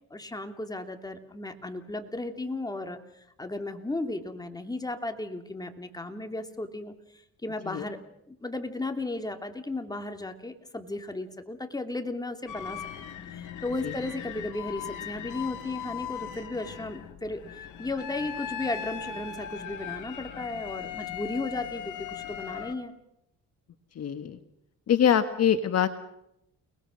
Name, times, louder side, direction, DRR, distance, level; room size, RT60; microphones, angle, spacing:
voice 1, 0.1-8.0 8.3-12.8 13.3-22.9, left 2 dB, 10° left, 6 dB, 2.8 m, -35 dB
sound 1, 12.5-22.7, left 8 dB, 80° left, 2.7 m, -39 dB
voice 2, 23.9-24.4 24.9-25.9, left 9 dB, 55° left, 10 dB, 1.5 m, -24 dB
29.5 x 20.0 x 6.5 m, 0.80 s
cardioid pair, 90°, 30 cm